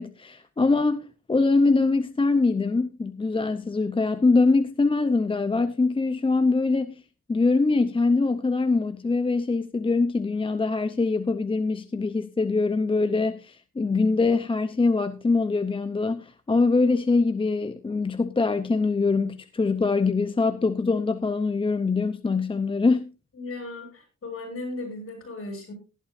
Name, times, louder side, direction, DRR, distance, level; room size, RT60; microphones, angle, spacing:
voice 1, 0.0-7.0 7.3-23.0, left 3 dB, 15° left, 0.6 m, -23 dB
voice 2, 23.3-25.7, left 2 dB, 45° left, 7.6 m, -36 dB
18.5 x 11.0 x 2.6 m
wide cardioid pair, 150°, 30 cm